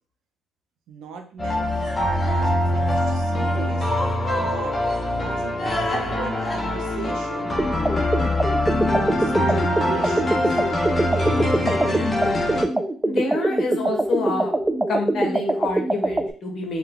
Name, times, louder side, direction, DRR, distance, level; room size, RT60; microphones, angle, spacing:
voice 1, 0.9-3.9 4.4-4.7 5.2-7.5 8.6-10.6, right 6 dB, 90° right, 4 dB, 0.7 m, -37 dB
sound 1, 1.4-12.6, left 1 dB, 30° left, 0.9 m, -23 dB
sound 2, 7.6-16.3, right 1 dB, 15° right, 0.3 m, -23 dB
voice 2, 13.0-14.5 14.9-16.8, left 3 dB, 60° left, 1 dB, 1.3 m, -27 dB
3.9 x 2.3 x 3.8 m, 0.43 s
cardioid pair, 90°, 0 cm